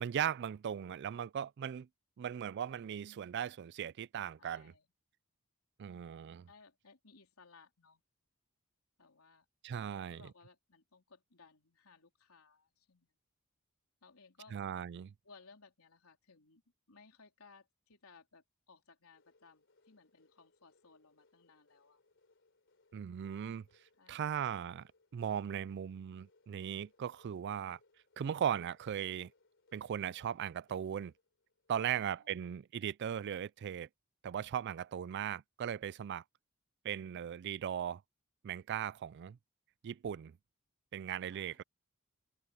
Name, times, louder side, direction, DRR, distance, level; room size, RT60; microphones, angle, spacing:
voice 1, 0.0-1.9 2.2-4.7 5.8-6.5 9.6-10.3 14.5-15.1 22.9-23.7 24.1-24.8 25.1-27.8 28.2-29.3 29.7-31.1 31.7-33.9 34.2-36.2 36.8-38.0 38.4-39.4 39.8-40.4 40.9-41.6, right 9 dB, 50° right, 0.3 m, -38 dB
voice 2, 4.4-4.9 6.2-8.0 9.0-9.5 9.9-13.1 14.0-14.6 15.2-16.6 16.9-22.0 24.0-24.4 31.9-32.5 41.2-41.6, left 4 dB, 90° left, 3.7 m, -62 dB
sound 1, 19.1-32.3, left 3 dB, 60° left, 3.3 m, -72 dB
open air
head